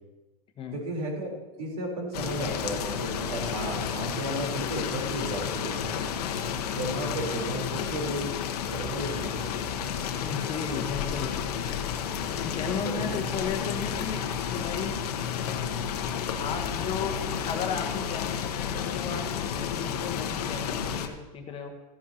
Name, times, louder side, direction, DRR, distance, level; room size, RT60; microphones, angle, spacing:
voice 1, 0.7-1.3 1.6-6.0 6.7-8.3 8.7-9.4 12.6-13.2, right 1 dB, 75° right, 0 dB, 3.9 m, -34 dB
sound 1, 2.1-21.1, left 7 dB, 80° left, 1.0 m, -31 dB
voice 2, 10.2-11.3 12.4-14.2 14.5-15.0 16.4-17.2 17.4-21.7, left 6 dB, 30° left, 3 dB, 1.3 m, -35 dB
14.0 x 10.5 x 2.9 m, 1.1 s
hypercardioid pair, 125°, 20 cm